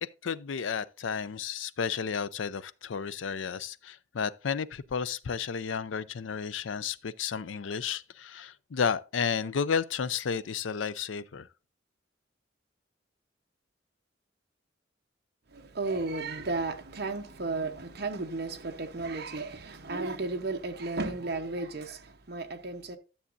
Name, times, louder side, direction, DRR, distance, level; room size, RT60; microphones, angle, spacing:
voice 1, 0.0-11.5, left 6 dB, 85° left, 0.5 m, -32 dB
voice 2, 15.5-23.0, right 3 dB, 55° right, 1.0 m, -34 dB
12.5 x 7.1 x 2.6 m
head